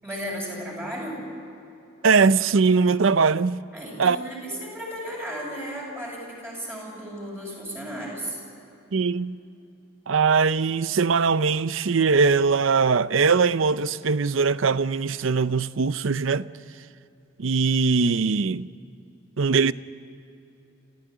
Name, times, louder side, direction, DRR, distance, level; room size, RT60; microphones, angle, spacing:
voice 1, 0.0-1.2 3.7-8.4, equal, 10° right, 7.7 m, -34 dB
voice 2, 2.0-3.6 4.0-4.2 8.9-9.4 10.1-16.5 17.4-18.7 19.4-19.7, right 5 dB, 70° right, 0.6 m, -21 dB
29.0 x 14.5 x 9.5 m
head